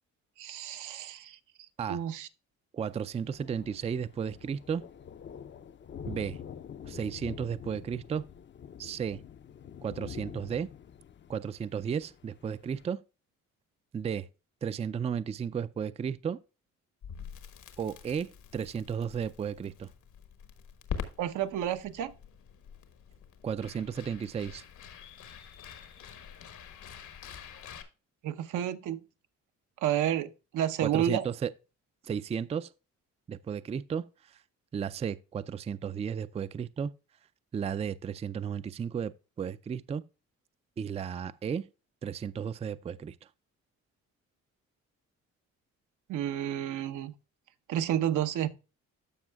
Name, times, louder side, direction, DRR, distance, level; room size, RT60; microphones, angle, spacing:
voice 1, 0.4-1.4 1.9-2.3 21.2-22.1 28.2-29.0 29.8-31.3 46.1-47.1 47.7-48.5, right 11 dB, 80° right, 0.9 m, -30 dB
voice 2, 2.7-4.8 6.1-6.4 6.8-8.2 8.8-9.2 9.8-10.7 11.3-13.0 13.9-14.3 14.6-16.4 17.8-19.9 23.4-24.6 30.8-31.5 32.0-32.7 33.3-34.4 34.7-36.9 37.5-40.0 40.8-41.7 42.0-43.2, right 7 dB, 20° right, 0.3 m, -34 dB
Thunder, 2.9-12.9, left 8 dB, 40° left, 0.5 m, -46 dB
Crackle, 17.0-27.8, left 7 dB, 75° left, 1.4 m, -45 dB
13.5 x 5.5 x 2.3 m
cardioid pair, 90°, 30 cm